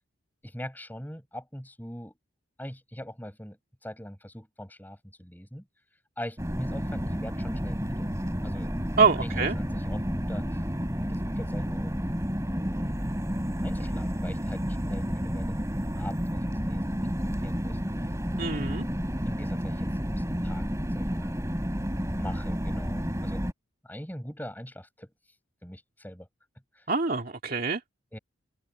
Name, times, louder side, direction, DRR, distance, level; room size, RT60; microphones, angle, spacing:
voice 1, 0.4-2.1 2.6-5.7 6.2-8.1 8.4-8.8 9.2-10.6 10.9-12.1 12.5-13.1 13.6-17.8 19.2-20.6 20.9-21.4 22.1-23.4 23.8-25.1 25.6-26.3 26.7-26.9 28.1-28.2, equal, 10° left, 6.8 m, -42 dB
sound 1, 6.4-23.5, equal, 15° right, 3.6 m, -31 dB
voice 2, 9.0-9.6 18.4-18.8 26.9-27.8, right 4 dB, 45° right, 2.1 m, -25 dB
head